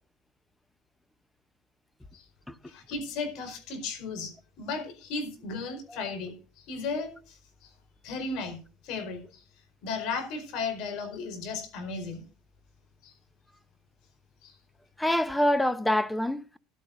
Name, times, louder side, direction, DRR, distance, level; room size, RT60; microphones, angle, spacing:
voice 1, 2.7-6.3 6.7-7.4 8.0-8.6 8.8-9.2 9.8-12.2 13.0-13.1 14.4-14.5, left 4 dB, 65° left, 4.5 m, -35 dB
voice 2, 15.0-16.6, left 1 dB, 5° left, 0.8 m, -26 dB
15.5 x 12.0 x 2.6 m
supercardioid pair, 100°, 0 cm